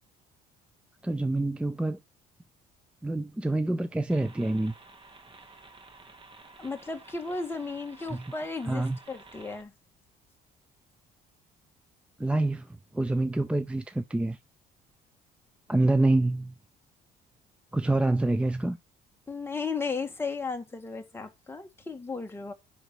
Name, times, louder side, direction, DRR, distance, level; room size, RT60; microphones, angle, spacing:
voice 1, 1.0-2.0 3.0-4.7 8.1-8.2 8.7-9.0 12.2-14.4 15.7-16.5 17.7-18.8, right 2 dB, 5° right, 0.6 m, -26 dB
sound 1, 4.1-9.6, right 3 dB, 30° right, 2.1 m, -52 dB
voice 2, 6.6-9.7 19.3-22.5, left 4 dB, 15° left, 1.8 m, -35 dB
10.0 x 3.6 x 6.2 m
cardioid pair, 110°, 17 cm